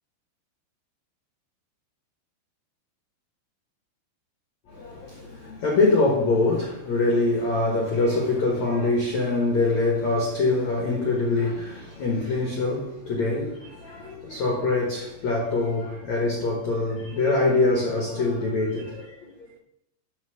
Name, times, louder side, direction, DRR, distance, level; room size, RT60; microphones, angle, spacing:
voice 1, 4.7-19.3, left 2 dB, 75° left, 1.6 m, -24 dB
11.5 x 4.3 x 8.1 m
omnidirectional pair, 5.8 m